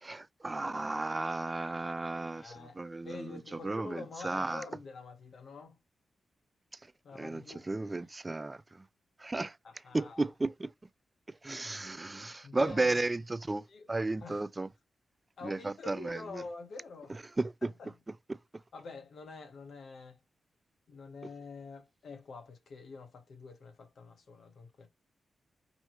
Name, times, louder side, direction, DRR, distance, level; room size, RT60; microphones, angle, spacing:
voice 1, 0.0-4.6 7.2-8.8 9.2-9.6 9.9-10.7 11.4-14.7 15.4-16.4 17.4-17.7, right 2 dB, 25° right, 0.3 m, -34 dB
voice 2, 2.3-2.8 3.0-5.8 7.0-7.7 9.6-10.3 12.4-13.0 13.7-13.9 14.2-14.4 15.4-17.2 17.6-17.9 18.7-20.2 20.9-24.9, left 4 dB, 75° left, 1.3 m, -47 dB
5.4 x 3.1 x 3.1 m
cardioid pair, 60°, 0 cm